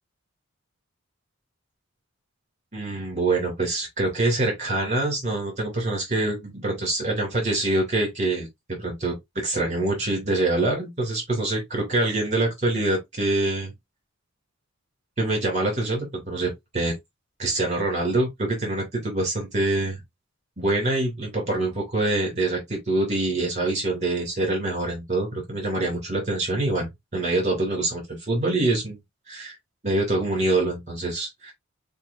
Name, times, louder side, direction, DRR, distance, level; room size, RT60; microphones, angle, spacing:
voice 1, 2.7-13.7 15.2-16.9 17.4-20.0 20.6-29.0 29.3-29.6 29.8-31.5, right 2 dB, 35° right, 2.8 m, -25 dB
6.9 x 2.5 x 2.6 m
head